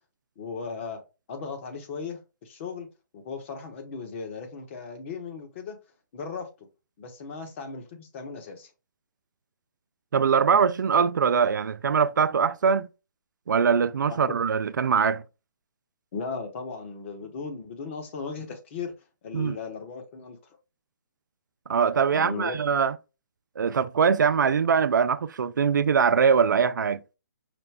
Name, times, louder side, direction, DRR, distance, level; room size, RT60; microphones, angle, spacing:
voice 1, 0.4-1.0 1.3-2.9 3.1-5.8 6.1-6.5 7.0-8.7 14.3-14.4 16.1-18.9 19.2-20.4 22.1-22.6, left 5 dB, 40° left, 1.1 m, -36 dB
voice 2, 10.1-12.9 13.5-15.2 19.3-19.6 21.7-22.9 23.6-27.0, right 6 dB, 70° right, 0.4 m, -22 dB
5.1 x 2.1 x 3.5 m
figure-of-eight pair, 140°, 10 cm